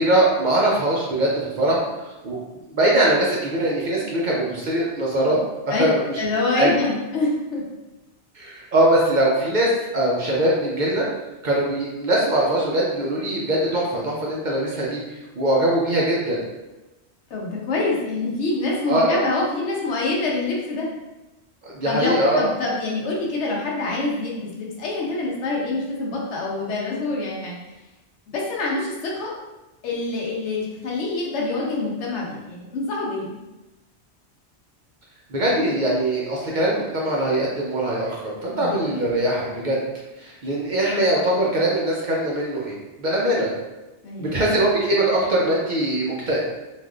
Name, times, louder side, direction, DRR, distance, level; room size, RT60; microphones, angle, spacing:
voice 1, 0.0-1.8 2.0-2.4 2.7-5.4 5.8-6.2 6.6-6.7 8.3-11.1 11.4-16.4 18.9-19.3 21.6-22.5 35.3-39.8 40.2-43.5 44.2-46.4, right 1 dB, 55° right, -4 dB, 0.6 m, -22 dB
voice 2, 6.2-7.6 17.3-20.9 21.9-27.6 28.3-29.3 29.8-33.4 38.5-38.8 44.0-44.4, left 3 dB, 80° left, -3 dB, 1.0 m, -26 dB
3.3 x 2.4 x 2.3 m, 1.0 s
omnidirectional pair, 1.2 m